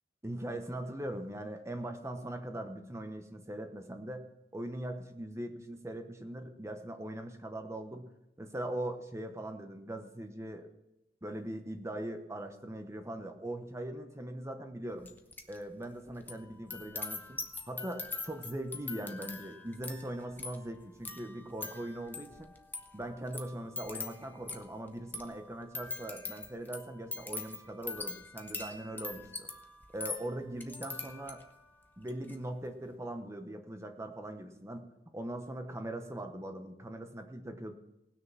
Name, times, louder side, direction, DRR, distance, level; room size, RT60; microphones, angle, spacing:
voice 1, 0.2-4.2 4.5-8.1 8.4-10.7 11.2-15.1 15.5-17.4 17.7-22.5 22.9-29.5 29.9-31.4 32.0-37.8, right 1 dB, 15° right, 6 dB, 0.9 m, -41 dB
sound 1, 15.0-15.6 15.8-31.6 32.0-32.4, left 3 dB, 10° left, 1.0 m, -43 dB
19.0 x 6.5 x 6.1 m, 0.89 s
head